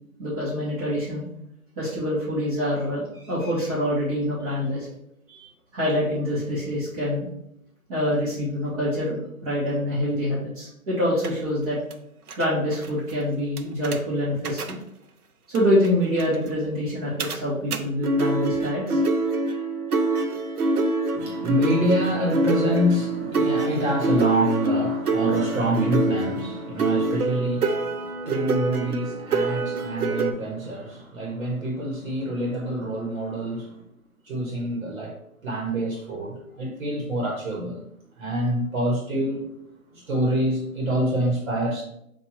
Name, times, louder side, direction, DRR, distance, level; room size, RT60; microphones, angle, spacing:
voice 1, 0.2-1.2 1.8-4.9 5.3-7.3 7.9-11.8 12.3-14.8 15.5-19.0, left 1 dB, 25° right, -7 dB, 1.2 m, -26 dB
sound 1, 11.2-11.3 11.9-12.0 12.3-12.4 12.7-12.9 13.6-14.0 14.4-14.7 15.5-15.6 15.8-15.9 16.2-16.3 17.2-17.4 17.7-17.8 18.0-30.3, right 2 dB, 85° right, 0.7 m, -25 dB
voice 2, 21.1-33.8 34.2-35.1 35.4-37.8 38.2-39.5 39.9-41.8, right 1 dB, 60° right, -2 dB, 1.3 m, -26 dB
5.6 x 2.7 x 3.0 m, 0.77 s
figure-of-eight pair, 145°, 43 cm